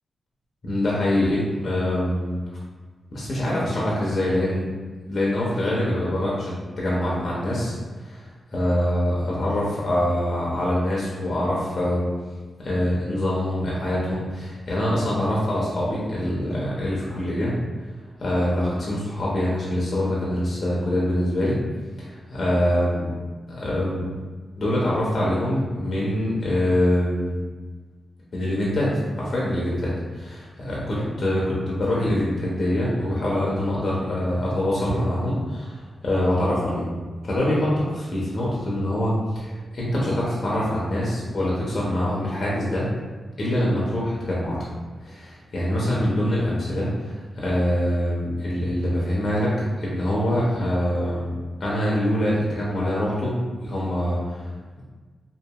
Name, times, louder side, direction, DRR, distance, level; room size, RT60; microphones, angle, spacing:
voice 1, 0.6-2.4 3.1-4.6 5.1-12.1 12.6-17.6 18.2-21.6 22.0-23.1 23.5-24.1 24.6-27.4 28.3-36.9 37.2-42.9 43.4-44.6 45.0-49.5 49.8-51.3 51.6-54.8, left 1 dB, 55° left, -6 dB, 0.6 m, -24 dB
2.8 x 2.4 x 2.3 m, 1.4 s
cardioid pair, 75°, 0 cm